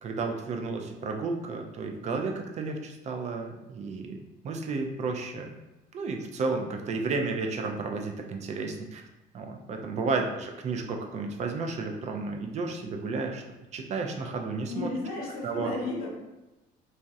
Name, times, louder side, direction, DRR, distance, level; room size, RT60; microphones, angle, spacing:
voice 1, 0.0-5.5 5.9-9.1 9.3-13.4 13.7-14.9 15.4-15.7, right 4 dB, 45° right, 3 dB, 0.4 m, -32 dB
voice 2, 6.8-7.2 9.9-10.2 14.6-16.1, left 2 dB, 60° left, -2 dB, 0.7 m, -35 dB
2.7 x 2.0 x 2.3 m, 1.0 s
cardioid pair, 110°, 17 cm